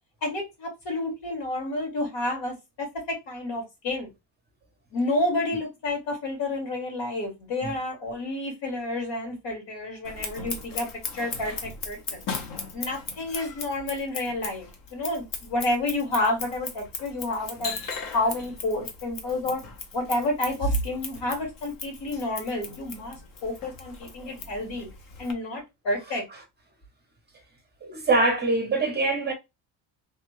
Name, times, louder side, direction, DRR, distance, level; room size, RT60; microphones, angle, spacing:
voice 1, 0.2-4.1 4.9-10.9 11.1-12.3 12.7-17.9 18.1-19.6 19.9-24.9 25.2-26.2, left 1 dB, 70° left, 2.2 m, -30 dB
Scissors, 10.0-25.3, left 4 dB, 45° left, 0.9 m, -38 dB
voice 2, 27.8-29.3, right 3 dB, 20° right, 0.7 m, -24 dB
3.4 x 2.3 x 3.1 m
cardioid pair, 135°, 46 cm